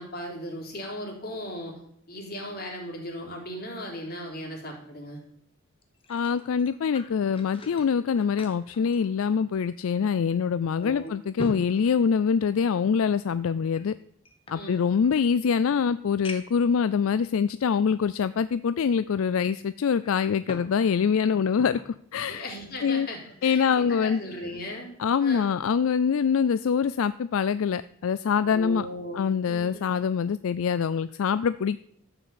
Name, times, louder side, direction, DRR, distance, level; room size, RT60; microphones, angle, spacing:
voice 1, 0.0-1.8 2.1-5.2 10.6-11.1 14.5-14.8 22.3-24.9 25.2-25.5 28.5-29.2 29.5-30.0, equal, 45° left, -1 dB, 3.9 m, -37 dB
sound 1, 5.8-9.8 10.2-10.3 10.8-12.8 13.7-15.1 15.7-15.8 16.2-16.7 17.4-17.5 19.8-20.8 21.1-21.9 22.4-22.6, left 2 dB, 25° left, 1.4 m, -43 dB
voice 2, 6.1-13.9 14.5-21.8 22.1-22.5 22.8-23.1 23.4-24.2 25.0-28.9 29.1-31.8, left 6 dB, 70° left, 15 dB, 0.4 m, -24 dB
13.5 x 5.9 x 8.5 m, 0.70 s
head